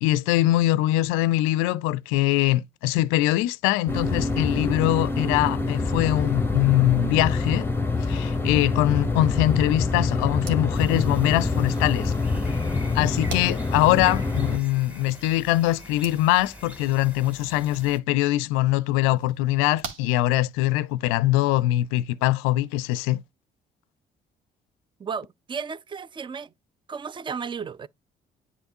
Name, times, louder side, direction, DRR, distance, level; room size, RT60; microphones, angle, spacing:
voice 1, 0.0-7.7 8.0-12.1 12.9-23.2, left 15 dB, 75° left, 0.5 m, -22 dB
sound 1, 3.9-14.6, left 3 dB, 10° left, 0.9 m, -26 dB
sound 2, 10.3-20.9, right 4 dB, 70° right, 1.6 m, -46 dB
sound 3, 10.7-18.0, equal, 5° right, 2.2 m, -45 dB
voice 2, 25.0-26.5 26.9-27.9, right 6 dB, 25° right, 0.5 m, -34 dB
10.0 x 4.1 x 2.7 m
hypercardioid pair, 55°, 21 cm